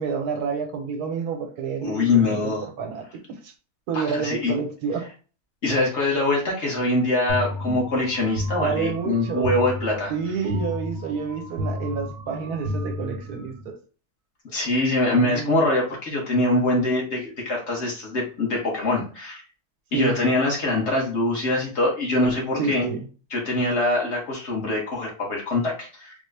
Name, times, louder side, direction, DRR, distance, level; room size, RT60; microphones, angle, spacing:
voice 1, 0.0-3.5 3.9-5.1 7.6-7.8 8.6-9.5 10.1-13.8 15.1-15.6 19.9-20.2 22.6-23.1, right 5 dB, 80° right, 1.3 m, -29 dB
voice 2, 1.8-2.7 3.9-4.5 5.6-10.1 14.5-19.4 19.9-22.9 23.3-26.1, left 2 dB, 50° left, 1.3 m, -23 dB
sound 1, 7.3-13.7, left 1 dB, 60° right, 1.1 m, -32 dB
3.8 x 2.1 x 3.2 m
omnidirectional pair, 1.6 m